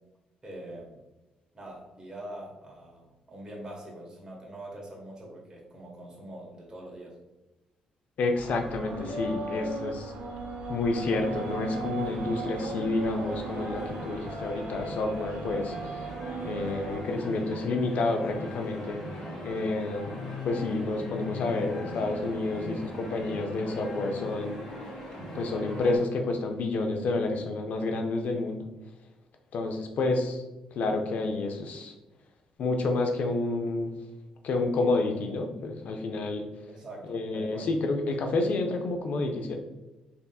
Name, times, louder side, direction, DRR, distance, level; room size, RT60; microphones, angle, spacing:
voice 1, 0.4-1.0 1.5-7.2 28.2-28.4 36.7-37.7, right 1 dB, 25° right, -2 dB, 1.2 m, -43 dB
voice 2, 8.2-10.1 10.7-16.0 16.4-19.0 19.4-20.2 20.4-24.6 25.3-28.6 29.5-30.4 30.8-31.9 32.6-33.9 34.4-36.5 37.1-39.6, left 3 dB, 65° left, 4 dB, 0.5 m, -29 dB
sound 1, 8.3-17.0, right 3 dB, 70° right, 0.5 m, -37 dB
sound 2, 10.9-26.0, left 1 dB, 20° left, 1.4 m, -40 dB
3.4 x 2.7 x 2.3 m, 1.0 s
supercardioid pair, 65°, 3 cm